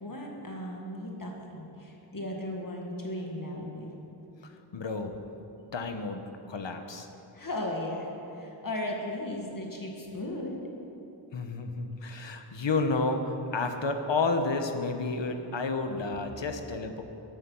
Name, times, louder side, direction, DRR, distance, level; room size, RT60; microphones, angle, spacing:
voice 1, 0.0-3.9 7.3-10.7, left 1 dB, 45° left, 0 dB, 1.8 m, -36 dB
voice 2, 4.7-5.2 5.7-6.2 6.5-7.1 11.3-17.0, left 3 dB, 65° left, 6 dB, 1.2 m, -30 dB
14.5 x 11.0 x 5.6 m, 2.9 s
wide cardioid pair, 80°, 47 cm